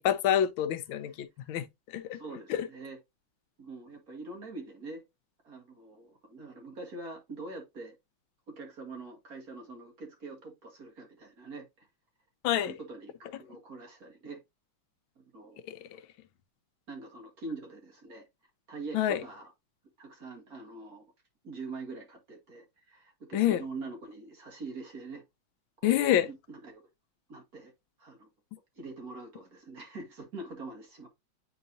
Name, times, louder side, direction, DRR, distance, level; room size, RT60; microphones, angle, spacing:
voice 1, 0.0-2.2 2.5-2.7 12.4-12.7 15.7-15.9 18.9-19.2 23.3-23.6 25.8-26.3, left 11 dB, 85° left, 1.4 m, -27 dB
voice 2, 2.1-3.0 3.6-5.0 5.4-8.0 8.5-11.9 12.7-14.4 15.2-15.6 16.9-18.3 18.7-19.5 20.0-21.0 21.4-25.2 25.8-26.8 27.3-27.7 28.0-28.3 28.8-31.1, right 3 dB, 50° right, 2.0 m, -44 dB
9.3 x 4.0 x 2.6 m
omnidirectional pair, 2.2 m